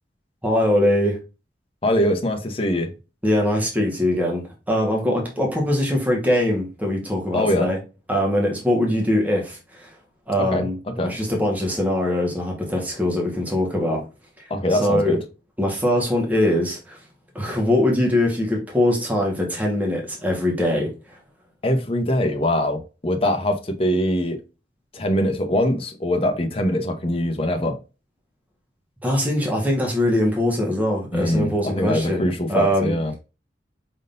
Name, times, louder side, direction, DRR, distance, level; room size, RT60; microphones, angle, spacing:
voice 1, 0.4-1.2 3.2-7.8 8.1-9.9 10.3-14.0 14.7-15.2 15.6-17.0 17.3-21.2 29.0-32.9, left 1 dB, 10° right, 1.4 m, -22 dB
voice 2, 1.8-2.9 7.3-7.7 10.4-10.7 11.0-11.1 14.5-15.2 21.6-24.4 24.9-27.8 31.1-33.1, left 1 dB, 35° left, 0.9 m, -22 dB
5.3 x 3.7 x 2.6 m
head